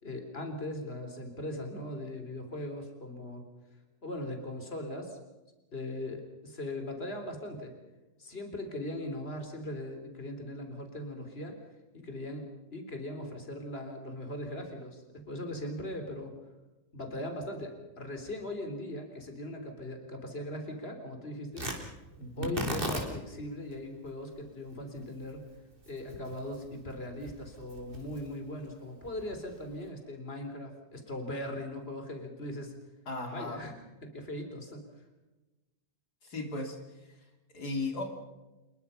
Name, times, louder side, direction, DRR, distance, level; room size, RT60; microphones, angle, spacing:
voice 1, 0.0-3.4 4.0-5.2 5.7-7.7 8.2-11.6 11.9-16.3 16.9-21.7 22.4-25.4 25.9-32.7 33.3-33.7 34.0-34.8, left 1 dB, 40° left, 5 dB, 3.8 m, -39 dB
Tearing, 21.5-29.9, right 1 dB, 35° right, 3.8 m, -41 dB
voice 2, 22.2-22.6 33.1-33.6 36.2-37.2 37.5-38.0, left 2 dB, 80° left, 3 dB, 3.7 m, -36 dB
27.5 x 22.0 x 5.7 m, 1.1 s
omnidirectional pair, 1.7 m